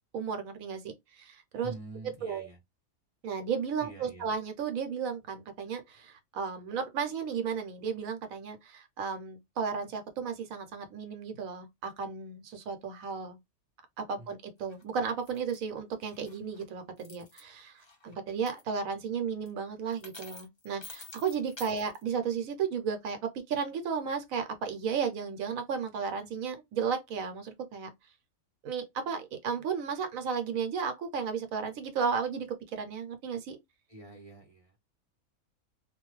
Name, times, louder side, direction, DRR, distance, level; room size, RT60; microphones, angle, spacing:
voice 1, 0.1-1.7 2.2-2.5 3.2-13.4 14.0-27.9 28.6-33.6, right 6 dB, 75° right, 1.0 m, -34 dB
voice 2, 1.6-2.6 3.8-4.3 14.2-14.3 21.7-21.8 33.9-34.8, right 2 dB, 35° right, 0.6 m, -46 dB
sound 1, 14.7-14.8 15.3-15.6 16.0-16.6 17.0-17.4 17.8-18.1 18.5-18.6 19.5-19.6 19.9-22.0, left 3 dB, 45° left, 0.3 m, -49 dB
2.6 x 2.3 x 3.1 m
omnidirectional pair, 1.5 m